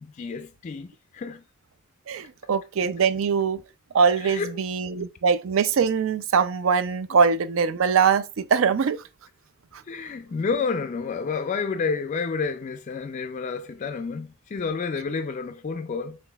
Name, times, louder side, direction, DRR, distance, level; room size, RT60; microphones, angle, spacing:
voice 1, 0.0-1.4 4.2-4.5 7.1-7.2 9.9-16.2, left 5 dB, 35° left, 0.3 m, -30 dB
voice 2, 2.1-3.6 3.9-9.0, right 6 dB, 70° right, 0.4 m, -22 dB
5.8 x 3.1 x 2.2 m
head